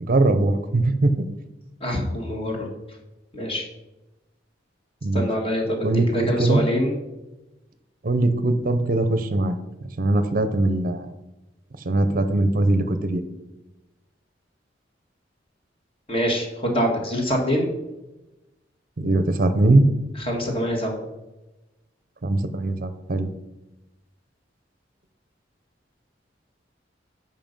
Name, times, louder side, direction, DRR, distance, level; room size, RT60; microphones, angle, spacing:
voice 1, 0.0-1.3 5.0-5.3 5.8-6.6 8.0-9.6 10.0-11.1 11.9-13.2 19.0-19.9 22.2-23.3, right 2 dB, 50° right, 10 dB, 0.6 m, -21 dB
voice 2, 1.8-2.7 3.3-3.6 5.1-5.9 6.1-6.9 16.1-17.7 20.2-21.0, equal, 30° left, 1 dB, 1.7 m, -24 dB
7.4 x 5.5 x 5.3 m, 1.0 s
head